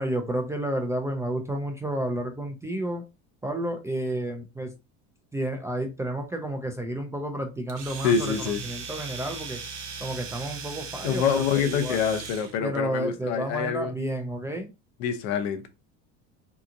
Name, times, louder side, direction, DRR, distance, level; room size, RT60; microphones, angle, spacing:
voice 1, 0.0-3.0 3.4-4.7 5.3-9.6 10.0-12.0 12.6-14.7, right 1 dB, 10° right, 0.3 m, -31 dB
Domestic sounds home sounds, 7.7-12.5, right 5 dB, 85° right, 0.8 m, -38 dB
voice 2, 8.0-8.6 11.0-13.9 15.0-15.7, left 7 dB, 70° left, 0.7 m, -26 dB
2.9 x 2.4 x 2.4 m
supercardioid pair, 110°, 36 cm